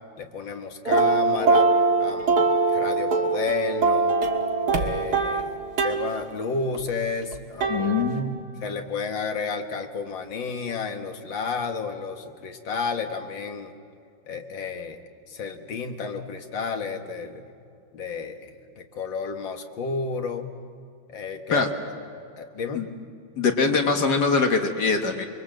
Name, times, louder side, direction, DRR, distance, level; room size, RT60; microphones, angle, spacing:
voice 1, 0.2-1.7 2.0-4.2 4.7-7.9 8.6-13.7 14.3-15.0 15.3-17.4 17.9-20.5 21.1-21.7 22.4-22.8, left 5 dB, 75° left, 5 dB, 2.2 m, -31 dB
sound 1, 0.9-6.1 6.7-8.2, right 3 dB, 55° right, 2.1 m, -22 dB
voice 2, 7.7-8.4 21.5-21.7 22.7-22.9 23.4-25.3, left 4 dB, 60° left, 5 dB, 1.9 m, -23 dB
25.0 x 23.0 x 7.6 m, 2.5 s
omnidirectional pair, 2.1 m